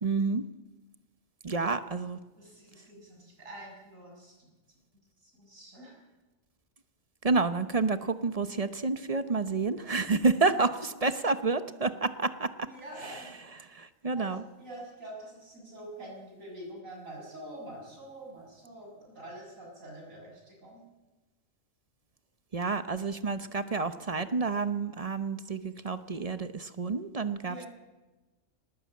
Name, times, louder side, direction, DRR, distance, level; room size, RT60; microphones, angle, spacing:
voice 1, 0.0-0.4 1.4-2.2 7.2-12.5 13.7-14.4 22.5-27.7, right 4 dB, 30° right, 11 dB, 0.9 m, -29 dB
voice 2, 2.3-4.5 5.2-6.0 12.6-13.4 14.1-20.8 27.5-27.7, right 1 dB, 85° right, -1 dB, 7.4 m, -46 dB
19.5 x 19.0 x 8.6 m, 1.2 s
omnidirectional pair, 1.4 m